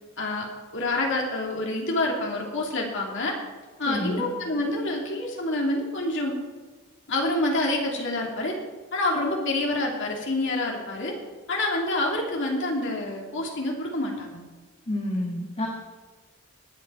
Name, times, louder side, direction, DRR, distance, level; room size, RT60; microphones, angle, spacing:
voice 1, 0.2-0.5 0.7-3.3 3.8-6.4 7.1-8.5 8.9-11.1 11.5-14.4, left 2 dB, 60° left, -1 dB, 2.8 m, -27 dB
voice 2, 3.8-4.3 14.9-15.7, left 1 dB, 30° left, -1 dB, 1.6 m, -29 dB
19.5 x 8.2 x 4.7 m, 1.3 s
head